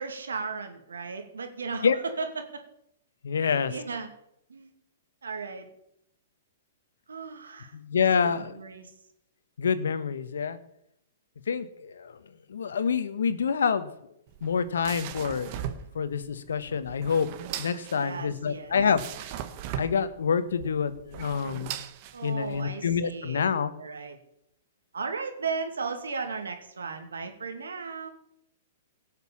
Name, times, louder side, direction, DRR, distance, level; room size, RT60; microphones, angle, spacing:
voice 1, 0.0-2.6 3.4-4.1 4.5-4.7 5.2-5.7 7.1-7.7 8.2-8.9 17.9-18.8 22.1-23.5 23.8-24.2 24.9-28.1, right 4 dB, 85° right, 5 dB, 2.5 m, -36 dB
voice 2, 3.2-3.8 7.7-8.6 9.6-10.6 11.5-12.2 12.5-13.9 14.4-15.5 15.9-17.3 17.6-19.0 19.7-21.7 22.2-23.7, left 6 dB, 80° left, 12 dB, 1.3 m, -27 dB
sound 1, 14.3-22.6, right 10 dB, 45° right, 1.4 m, -39 dB
17.0 x 6.7 x 7.2 m, 0.77 s
hypercardioid pair, 125°, 0 cm